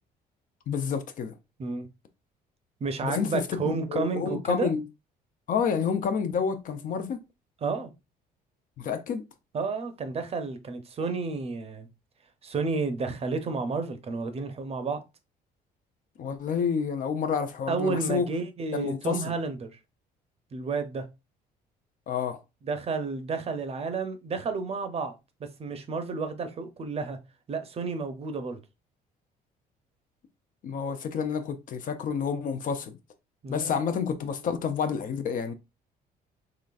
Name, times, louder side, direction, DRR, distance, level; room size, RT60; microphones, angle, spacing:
voice 1, 0.7-1.3 3.0-4.8 5.5-7.2 8.8-9.2 16.2-18.3 18.7-19.3 22.1-22.4 30.6-33.0 33.5-35.5, left 6 dB, 50° left, 0.6 m, -29 dB
voice 2, 2.8-4.7 7.6-7.9 9.5-11.9 12.4-15.0 17.7-19.7 20.5-21.0 22.6-25.1 25.4-27.2 27.5-28.6 33.4-33.7, right 4 dB, 35° right, 0.7 m, -31 dB
3.9 x 3.1 x 2.4 m
cardioid pair, 110°, 17 cm